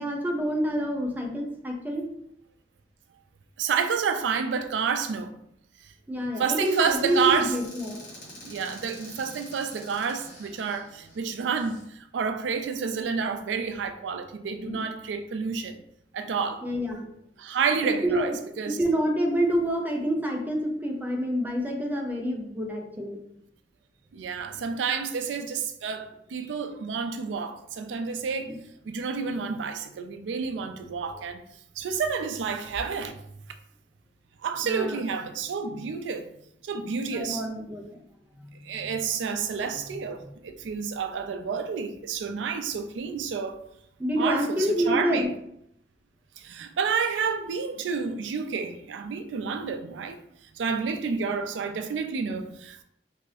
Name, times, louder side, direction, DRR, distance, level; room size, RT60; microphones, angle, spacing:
voice 1, 0.0-2.1 6.1-8.2 14.6-14.8 16.6-17.1 17.8-18.3 18.7-23.2 28.4-28.6 34.6-35.0 37.1-38.0 38.3-39.0 44.0-45.3, equal, 10° right, 0.5 m, -28 dB
voice 2, 3.6-5.4 5.8-5.9 6.4-7.5 8.4-15.8 16.1-16.7 17.4-18.3 18.6-18.8 24.1-28.6 28.9-31.4 31.8-33.2 34.4-36.2 36.6-37.4 38.6-43.6 44.2-45.3 46.4-50.2 50.5-52.8, right 6 dB, 80° right, 0.4 m, -29 dB
Squeak / Cupboard open or close, 6.6-11.8, equal, 50° left, 1.1 m, -47 dB
2.7 x 2.5 x 3.2 m
head